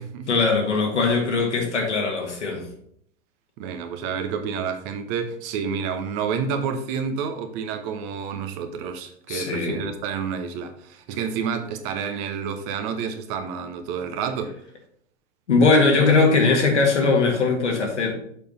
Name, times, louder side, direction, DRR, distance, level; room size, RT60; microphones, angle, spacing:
voice 1, 0.3-2.7 9.3-9.8 15.5-18.1, left 3 dB, 75° left, 2.0 m, -20 dB
voice 2, 3.6-14.6, right 6 dB, 45° right, 1.1 m, -29 dB
6.6 x 5.1 x 4.1 m
figure-of-eight pair, 95°, 35 cm